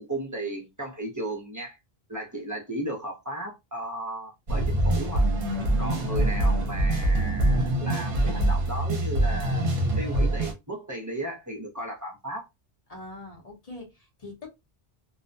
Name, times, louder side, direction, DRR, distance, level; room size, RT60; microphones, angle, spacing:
voice 1, 0.0-1.8 2.1-5.3 5.8-9.7 10.0-12.5, right 1 dB, 20° right, 0.5 m, -35 dB
sound 1, 4.5-10.5, right 1 dB, 60° right, 0.8 m, -24 dB
voice 2, 12.9-14.5, left 2 dB, 40° left, 0.8 m, -43 dB
2.3 x 2.1 x 2.5 m
omnidirectional pair, 1.0 m